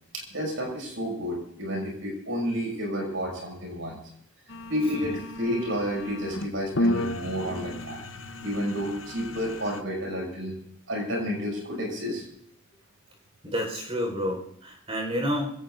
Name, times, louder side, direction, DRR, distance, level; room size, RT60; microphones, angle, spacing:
voice 1, 0.1-4.0 4.7-8.0 8.4-10.5 10.9-12.2, equal, 80° right, 0 dB, 6.5 m, -30 dB
sound 1, 4.5-9.8, left 1 dB, 85° left, 0.9 m, -33 dB
voice 2, 13.4-15.5, equal, 30° right, 1 dB, 4.6 m, -29 dB
26.5 x 17.0 x 2.6 m, 0.70 s
head